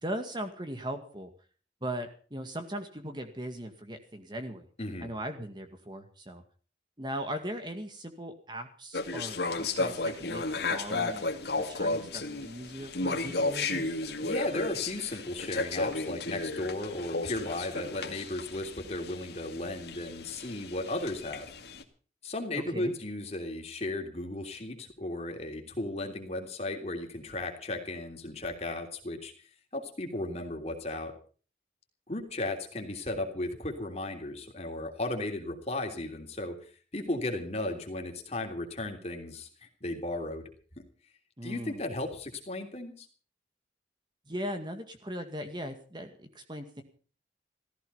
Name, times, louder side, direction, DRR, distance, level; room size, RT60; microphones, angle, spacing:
voice 1, 0.0-1.3 1.8-4.7 5.0-6.4 7.0-11.3 11.6-13.9 22.7-22.9 41.4-41.8 44.3-46.8, equal, 25° right, 6 dB, 2.0 m, -39 dB
voice 2, 4.8-5.1 14.2-21.5 22.2-29.3 29.7-31.1 32.1-40.4 40.8-40.9 41.4-43.1, left 2 dB, 35° left, 3 dB, 3.2 m, -35 dB
sound 1, 8.9-21.8, left 3 dB, 70° left, 2.1 m, -34 dB
16.0 x 14.5 x 5.6 m, 0.41 s
head